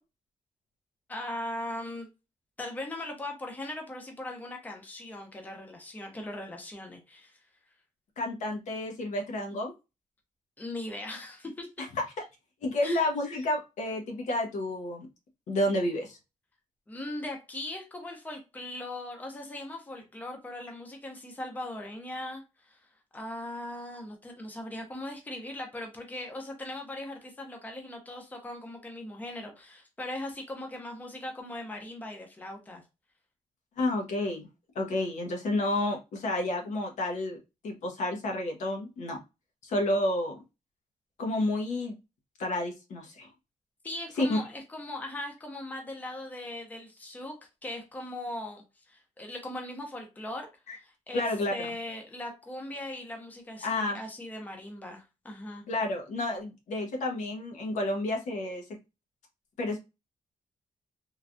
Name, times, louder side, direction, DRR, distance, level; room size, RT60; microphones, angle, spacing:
voice 1, 1.1-2.1 2.6-7.4 10.6-11.7 12.8-13.0 16.9-22.8 23.1-32.8 43.8-47.3 47.6-51.3 51.5-55.6, left 1 dB, 15° left, 0.6 m, -39 dB
voice 2, 8.2-9.7 11.8-11.9 12.6-15.1 15.5-16.2 33.8-34.5 34.7-37.4 37.6-39.2 39.6-40.4 41.2-42.0 42.4-43.3 44.2-44.4 50.7-50.8 51.1-51.5 53.6-54.0 55.7-58.6 59.6-59.8, left 1 dB, 80° left, 0.8 m, -30 dB
3.2 x 2.2 x 2.5 m
wide cardioid pair, 175°, 12 cm